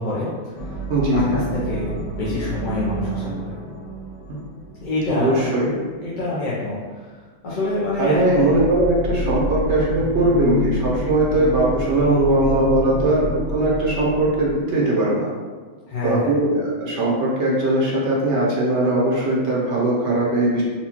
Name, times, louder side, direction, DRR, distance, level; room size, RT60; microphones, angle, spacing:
voice 1, 0.0-0.8 1.1-3.5 4.8-5.4 6.0-7.2 7.4-8.5 15.9-16.3, left 2 dB, 50° left, -9 dB, 0.8 m, -26 dB
sound 1, 0.6-5.4 7.5-14.5, equal, 85° left, 1.1 m, -29 dB
voice 2, 0.9-1.4 4.3-4.4 5.2-5.7 8.0-15.3 16.0-20.6, right 1 dB, 70° right, -4 dB, 1.0 m, -20 dB
4.2 x 2.4 x 2.9 m, 1.5 s
omnidirectional pair, 1.3 m